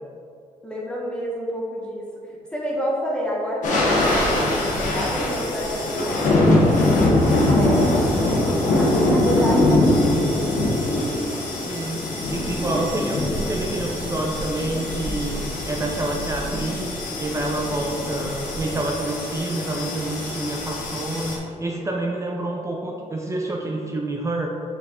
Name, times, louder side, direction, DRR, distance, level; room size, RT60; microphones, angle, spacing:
voice 1, 0.6-7.0 7.5-8.0 8.4-10.6, equal, 5° left, -3 dB, 1.3 m, -29 dB
sound 1, 3.6-21.4, left 1 dB, 75° left, 1.3 m, -22 dB
voice 2, 11.7-24.5, right 2 dB, 25° right, 0 dB, 0.6 m, -28 dB
6.1 x 4.6 x 3.7 m, 2.5 s
cardioid pair, 115°, 13 cm